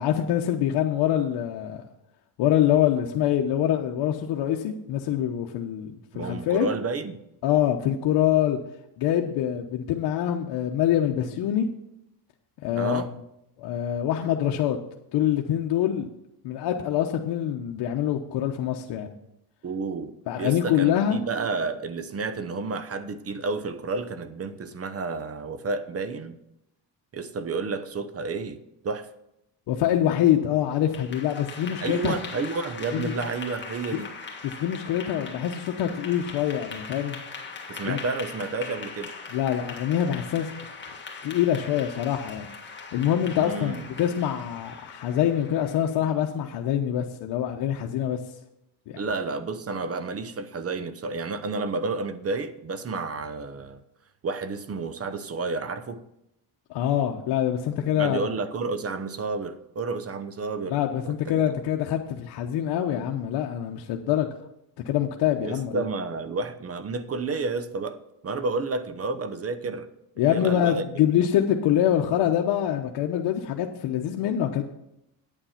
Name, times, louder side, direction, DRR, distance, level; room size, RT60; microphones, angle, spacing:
voice 1, 0.0-1.8 2.4-6.7 7.4-8.6 9.0-11.7 12.6-13.0 13.6-14.8 15.1-16.1 16.4-19.1 20.3-21.2 29.7-32.1 32.9-33.1 34.6-37.2 37.8-38.0 39.3-40.5 41.2-42.5 42.9-48.2 48.9-49.0 56.7-58.2 60.7-64.3 64.8-65.8 70.2-74.6, left 10 dB, 70° left, 1.0 m, -25 dB
voice 2, 6.1-7.2 12.7-13.1 19.6-26.4 27.1-29.1 31.8-34.1 37.7-39.1 43.3-43.9 49.0-53.8 54.2-56.0 57.9-60.8 61.0-61.4 65.4-69.9 70.2-70.8, right 4 dB, 35° right, 0.9 m, -31 dB
Clapping / Applause, 30.7-46.0, left 4 dB, 25° left, 1.8 m, -41 dB
9.0 x 8.8 x 5.7 m
cardioid pair, 105°, 42 cm